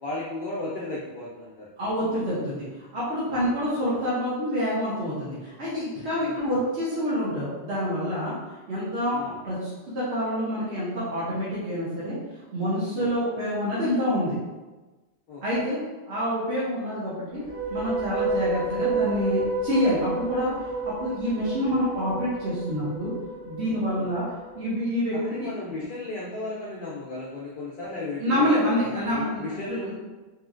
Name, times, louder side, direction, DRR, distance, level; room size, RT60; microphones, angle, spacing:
voice 1, 0.0-1.7 3.3-3.5 6.2-6.4 9.1-9.3 13.0-13.1 15.3-15.4 21.6-21.8 23.9-24.1 25.1-28.5 28.8-29.9, left 2 dB, 60° left, -5 dB, 0.7 m, -35 dB
voice 2, 1.8-2.6 2.9-8.3 8.7-12.2 12.5-14.4 15.4-15.8 16.1-17.4 17.7-20.5 20.8-23.1 23.5-24.2 24.6-25.1 28.2-29.8, equal, 85° right, -10 dB, 1.1 m, -27 dB
sound 1, 17.3-24.6, right 3 dB, 65° right, 0.8 m, -30 dB
3.0 x 2.7 x 2.4 m, 1.2 s
omnidirectional pair, 1.1 m